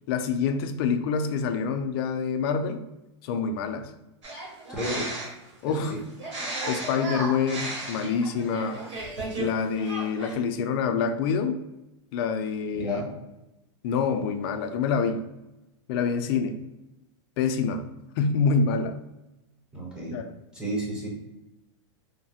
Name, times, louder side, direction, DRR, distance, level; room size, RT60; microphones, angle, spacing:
voice 1, 0.1-2.8 3.2-3.9 5.6-5.9 6.7-8.8 9.4-11.6 12.1-13.0 13.8-15.2 15.9-16.6 17.4-17.8 18.2-19.0 20.1-20.2, left 5 dB, 55° left, 7 dB, 0.4 m, -26 dB
sound 1, 4.2-5.5 6.2-9.5 9.8-10.3, right 2 dB, 85° right, 1.1 m, -34 dB
voice 2, 4.7-5.1 5.6-6.0 12.7-13.1 19.7-20.2 20.5-21.1, equal, 5° right, -4 dB, 0.8 m, -32 dB
3.1 x 2.1 x 2.8 m, 0.95 s
supercardioid pair, 145°, 15 cm